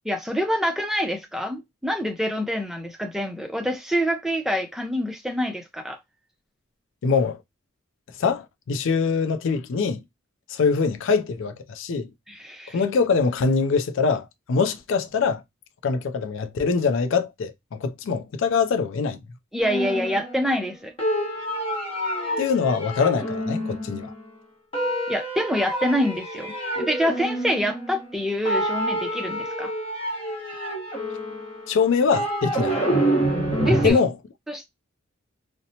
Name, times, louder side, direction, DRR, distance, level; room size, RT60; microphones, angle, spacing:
voice 1, 0.1-6.0 12.3-12.8 19.5-20.9 25.1-29.7 33.6-34.0 34.5-34.7, equal, ahead, 0.5 m, -26 dB
voice 2, 7.0-7.4 8.2-10.0 10.5-12.1 12.7-15.4 15.8-19.2 22.4-24.1 31.7-32.8 33.8-34.1, left 5 dB, 60° left, 0.4 m, -23 dB
sound 1, 19.6-20.7 21.0-24.3 24.7-28.2 28.5-33.9, right 1 dB, 25° left, 0.9 m, -27 dB
2.8 x 2.0 x 2.7 m
head